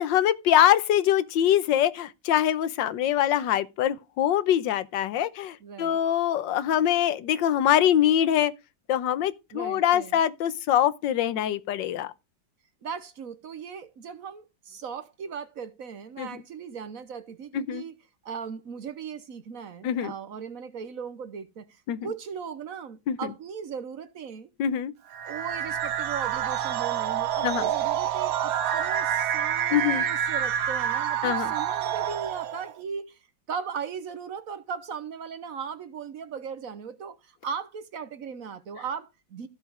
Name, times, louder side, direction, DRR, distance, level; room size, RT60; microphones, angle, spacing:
voice 1, 0.0-8.5 8.9-12.1 16.2-16.3 17.5-17.8 19.8-20.1 21.9-22.1 23.1-23.2 24.6-24.9 27.4-27.7 29.7-30.0 31.2-31.5, left 10 dB, 80° left, 1.5 m, -24 dB
voice 2, 5.6-6.0 9.5-10.2 12.8-18.0 18.2-24.5 25.2-33.2 33.5-39.5, right 6 dB, 55° right, 1.2 m, -38 dB
sound 1, 25.1-32.7, right 9 dB, 90° right, 1.7 m, -28 dB
15.0 x 5.1 x 4.9 m
omnidirectional pair, 2.0 m